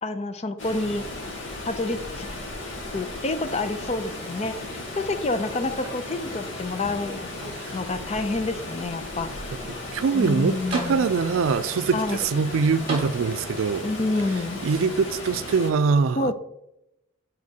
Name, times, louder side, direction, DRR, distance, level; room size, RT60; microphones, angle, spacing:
voice 1, 0.0-1.0 1.7-2.3 2.9-7.3 7.7-9.6 10.1-11.1 11.9-12.2 13.8-14.6 16.2-16.3, left 2 dB, 30° left, 0.4 m, -28 dB
Water, 0.6-15.7, left 2 dB, 70° left, 1.7 m, -36 dB
sound 1, 5.8-6.5 6.9-7.9 8.6-8.7 10.2-10.3 10.7-11.5 12.9-13.7 14.8-14.9, right 2 dB, 25° right, 1.7 m, -37 dB
voice 2, 9.7-13.8 14.6-16.3, right 5 dB, 85° right, 0.4 m, -23 dB
9.6 x 4.2 x 2.8 m
head